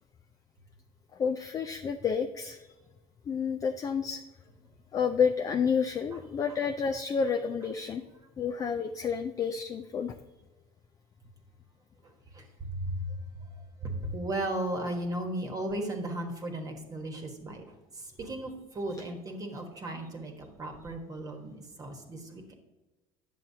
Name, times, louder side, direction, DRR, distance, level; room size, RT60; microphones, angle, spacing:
voice 1, 1.1-2.7 3.3-4.2 4.9-8.0 8.4-10.1 18.9-19.0, left 6 dB, 25° left, 7 dB, 0.4 m, -30 dB
voice 2, 12.0-13.5 13.8-22.6, right 1 dB, 25° right, 3 dB, 1.3 m, -36 dB
9.0 x 7.3 x 2.7 m, 1.1 s
cardioid pair, 125°, 13 cm